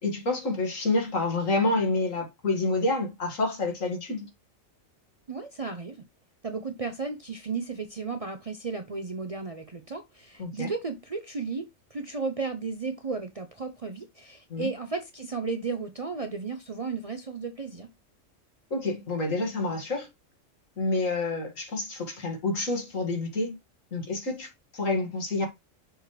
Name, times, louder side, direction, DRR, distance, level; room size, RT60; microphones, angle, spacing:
voice 1, 0.0-4.3 10.4-10.7 14.5-14.7 18.7-20.1 20.8-23.6 23.9-25.5, left 2 dB, 75° left, 2.4 m, -28 dB
voice 2, 5.3-6.0 6.4-17.9, right 4 dB, 40° right, 0.5 m, -34 dB
6.3 x 3.3 x 4.8 m
omnidirectional pair, 1.4 m